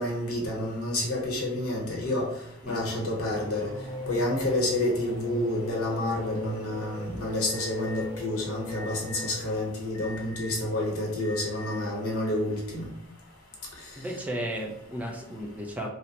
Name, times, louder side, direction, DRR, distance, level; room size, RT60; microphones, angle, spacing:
voice 1, 0.0-2.3 2.7-3.7 4.1-12.8, left 1 dB, 80° left, -2 dB, 1.0 m, -29 dB
Race car auto racing / Accelerating revving vroom, 2.7-10.0, left 1 dB, 65° right, 1.1 m, -42 dB
Alarm, 7.5-8.0 8.7-9.3 9.9-10.6 11.2-11.8, left 1 dB, 40° left, 0.8 m, -43 dB
voice 2, 14.0-15.9, right 1 dB, 5° right, 1 dB, 0.3 m, -34 dB
2.9 x 2.1 x 2.8 m, 0.82 s
head